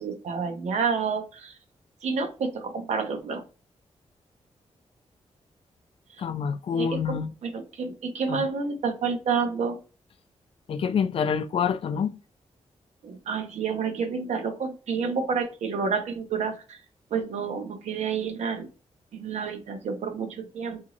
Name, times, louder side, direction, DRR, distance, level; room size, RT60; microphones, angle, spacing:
voice 1, 0.0-1.5 2.0-3.4 6.8-9.8 13.0-16.8 17.1-18.7 19.1-20.8, right 5 dB, 85° right, 0.8 m, -29 dB
voice 2, 6.2-7.3 8.3-8.5 10.7-12.1, left 6 dB, 55° left, 0.4 m, -27 dB
2.9 x 2.7 x 3.8 m
wide cardioid pair, 160°, 11 cm